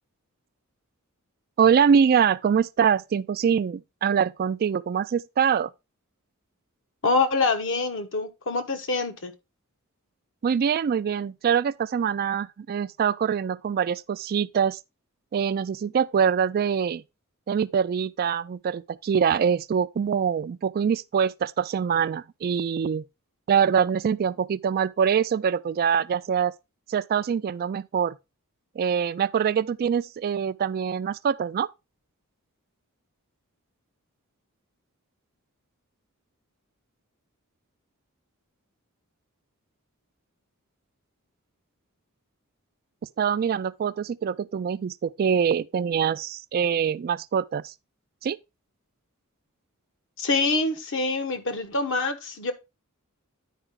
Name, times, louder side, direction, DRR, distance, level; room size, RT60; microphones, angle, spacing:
voice 1, 1.6-5.7 10.4-14.8 15.3-17.0 17.5-23.0 23.5-26.5 26.9-28.2 28.8-31.7 43.2-47.7 48.2-48.4, right 7 dB, 45° right, 0.3 m, -24 dB
voice 2, 7.0-9.3 50.2-52.5, left 3 dB, 60° left, 1.2 m, -25 dB
10.0 x 4.8 x 3.6 m
head